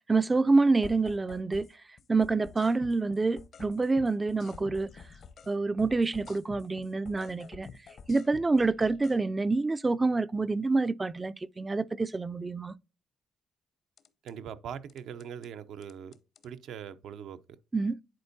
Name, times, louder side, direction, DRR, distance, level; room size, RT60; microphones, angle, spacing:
voice 1, 0.0-1.7 2.1-4.9 5.5-7.7 8.1-12.7 17.7-17.9, right 3 dB, 20° right, 0.3 m, -27 dB
sound 1, 0.8-1.7 2.0-5.5 5.8-9.2 14.0-14.3 14.9-15.5 15.8-16.5, left 6 dB, 60° left, 0.7 m, -49 dB
voice 2, 14.2-16.2 16.4-17.6, right 8 dB, 75° right, 0.5 m, -41 dB
10.5 x 4.3 x 2.6 m
cardioid pair, 90°, 0 cm